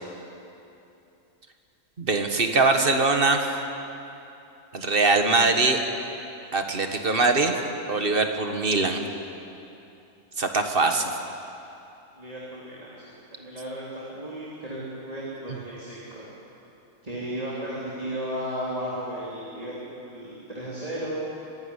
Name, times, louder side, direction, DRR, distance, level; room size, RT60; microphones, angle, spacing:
voice 1, 2.0-3.5 4.7-5.8 6.5-7.6 7.9-9.0 10.4-11.1, right 3 dB, 45° right, 5 dB, 1.6 m, -22 dB
voice 2, 12.2-16.3 17.0-21.2, equal, 30° right, -7 dB, 3.5 m, -35 dB
24.5 x 12.0 x 9.8 m, 2.8 s
omnidirectional pair, 1.4 m